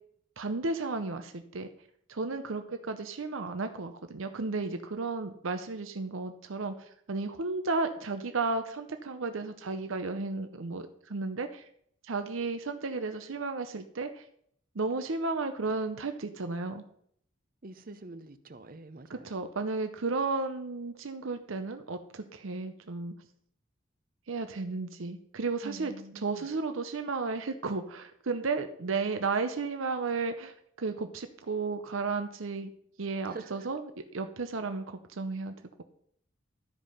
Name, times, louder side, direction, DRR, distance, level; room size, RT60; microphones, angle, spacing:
voice 1, 0.4-1.7 2.1-11.7 12.0-14.2 14.7-16.8 19.1-23.1 24.3-25.9 26.2-32.7 33.0-33.8 34.1-35.8, right 3 dB, 85° right, 7 dB, 0.7 m, -33 dB
voice 2, 17.6-19.3 25.6-26.5 33.2-33.7, right 2 dB, 45° right, 11 dB, 0.7 m, -46 dB
12.5 x 5.2 x 5.6 m, 0.66 s
head